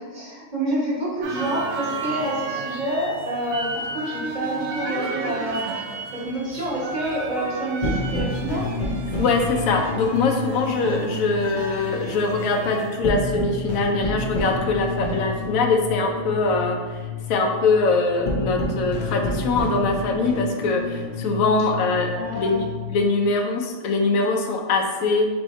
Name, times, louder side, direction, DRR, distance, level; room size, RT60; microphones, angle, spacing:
voice 1, 0.1-5.7 6.2-8.7 22.1-22.6, right 1 dB, 40° right, -6 dB, 1.0 m, -28 dB
sound 1, 1.2-12.9, right 3 dB, 85° right, 1.0 m, -33 dB
sound 2, 7.8-23.1, left 2 dB, 55° left, 0.5 m, -29 dB
voice 2, 9.2-17.0 17.3-25.3, left 3 dB, 85° left, 2 dB, 1.0 m, -22 dB
3.5 x 2.6 x 4.1 m, 1.4 s
omnidirectional pair, 1.4 m